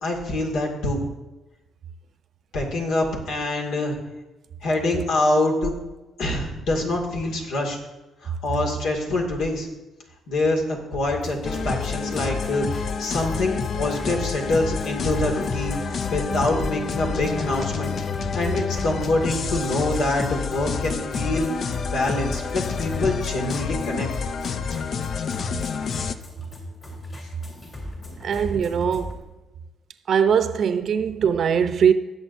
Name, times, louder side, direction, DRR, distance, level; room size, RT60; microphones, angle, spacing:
voice 1, 0.0-1.1 2.5-4.0 4.6-5.7 6.2-7.8 8.2-9.7 10.3-17.9 18.3-21.5 21.9-24.1 27.6-27.7 28.0-28.2, left 2 dB, 80° left, 2.2 m, -25 dB
sound 1, 11.1-29.2, left 1 dB, 35° left, 3.3 m, -38 dB
sound 2, 11.4-26.2, left 6 dB, 55° left, 0.5 m, -29 dB
voice 2, 28.2-29.2 30.1-31.9, right 7 dB, 60° right, 0.6 m, -21 dB
17.5 x 7.7 x 2.7 m
cardioid pair, 90°, 0 cm